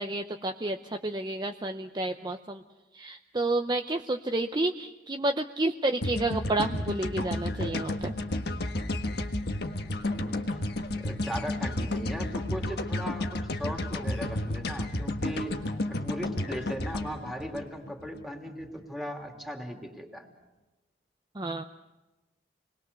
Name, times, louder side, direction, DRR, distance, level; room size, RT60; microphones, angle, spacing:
voice 1, 0.0-2.6 2.9-8.1 21.3-21.6, right 2 dB, 25° right, 5 dB, 0.7 m, -30 dB
sound 1, 6.0-18.2, left 1 dB, 65° left, 1.5 m, -32 dB
voice 2, 10.1-10.6 11.0-15.6 15.9-20.3, equal, ahead, 2 dB, 2.9 m, -38 dB
28.5 x 21.0 x 6.9 m, 1.1 s
head